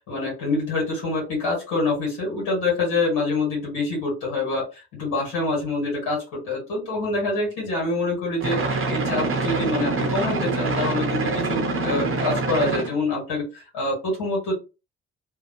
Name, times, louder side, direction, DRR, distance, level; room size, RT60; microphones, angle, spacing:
voice 1, 0.1-14.5, left 2 dB, 75° left, -3 dB, 1.4 m, -26 dB
sound 1, 8.4-12.9, right 3 dB, 40° right, 0.8 m, -25 dB
2.7 x 2.2 x 2.7 m, 0.29 s
hypercardioid pair, 45°, 33 cm